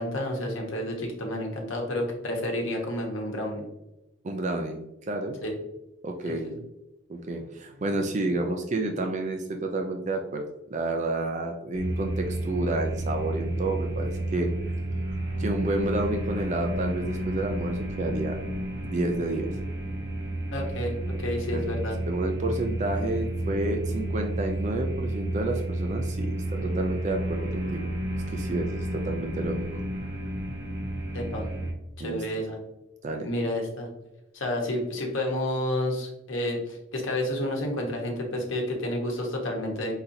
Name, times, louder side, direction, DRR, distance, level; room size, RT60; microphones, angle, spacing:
voice 1, 0.0-3.6 5.4-5.5 6.2-6.5 20.5-22.0 31.1-31.5 32.0-32.6 33.2-33.9 34.3-39.9, left 1 dB, 65° left, 0 dB, 1.1 m, -30 dB
voice 2, 4.2-5.4 6.0-6.5 7.1-14.5 15.4-18.4 18.8-19.5 21.5-21.7 22.1-27.9 28.3-29.6 32.0-32.2 33.0-33.3, right 2 dB, 35° right, 4 dB, 0.4 m, -30 dB
sound 1, 11.7-31.7, right 1 dB, 70° right, 1.3 m, -31 dB
4.3 x 4.0 x 2.7 m, 0.94 s
head